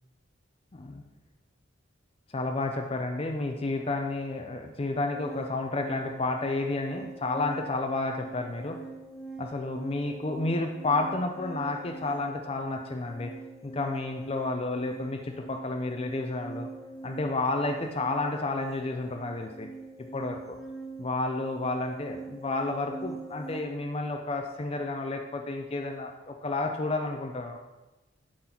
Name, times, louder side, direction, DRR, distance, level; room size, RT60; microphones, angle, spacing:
voice 1, 0.7-1.0 2.3-8.8 9.4-13.3 13.6-16.7 17.0-19.7 20.1-20.6 21.0-27.6, left 2 dB, 30° left, 3 dB, 0.5 m, -31 dB
sound 1, 5.1-23.6, right 3 dB, ahead, 0.9 m, -43 dB
11.5 x 4.0 x 4.4 m, 1.1 s
head